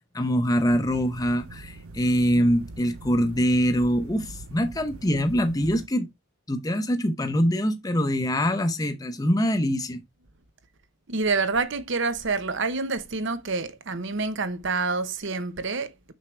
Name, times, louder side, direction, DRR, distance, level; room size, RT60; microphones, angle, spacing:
voice 1, 0.1-6.1 6.5-10.0, equal, 15° left, 0.7 m, -24 dB
sound 1, 0.6-5.9, right 2 dB, 90° right, 0.7 m, -43 dB
voice 2, 11.1-15.9, right 4 dB, 60° right, 0.9 m, -27 dB
6.5 x 6.2 x 3.2 m
head